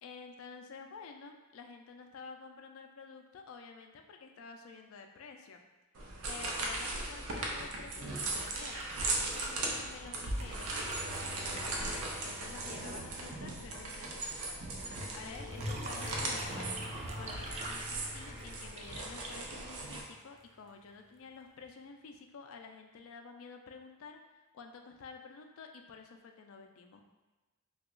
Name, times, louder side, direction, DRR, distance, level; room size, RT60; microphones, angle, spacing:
voice 1, 0.0-5.6 6.3-10.8 11.0-16.7 17.2-27.0, left 5 dB, 70° left, 4 dB, 0.4 m, -51 dB
sound 1, 5.9-20.0, right 2 dB, 90° right, 0.6 m, -38 dB
sound 2, 8.2-12.9 15.3-20.2 21.6-21.7, right 2 dB, 30° right, 0.3 m, -47 dB
sound 3, 9.8-20.5, left 1 dB, 60° right, 0.8 m, -46 dB
2.8 x 2.3 x 3.6 m, 1.1 s
head